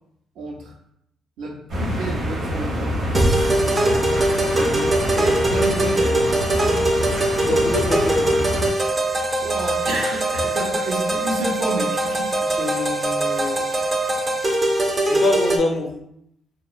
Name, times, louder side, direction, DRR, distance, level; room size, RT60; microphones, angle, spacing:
voice 1, 0.4-0.7 1.4-3.0 4.5-6.3 9.2-12.3, right 2 dB, 90° right, -1 dB, 0.6 m, -30 dB
sound 1, 1.7-8.7, equal, 60° right, 0.9 m, -26 dB
sound 2, 3.1-15.6, right 1 dB, 30° right, 0.4 m, -22 dB
voice 2, 7.5-8.4 12.5-13.6 15.1-15.9, left 3 dB, 55° left, 3 dB, 0.4 m, -25 dB
2.8 x 2.0 x 2.3 m, 0.75 s
cardioid pair, 90°, 0 cm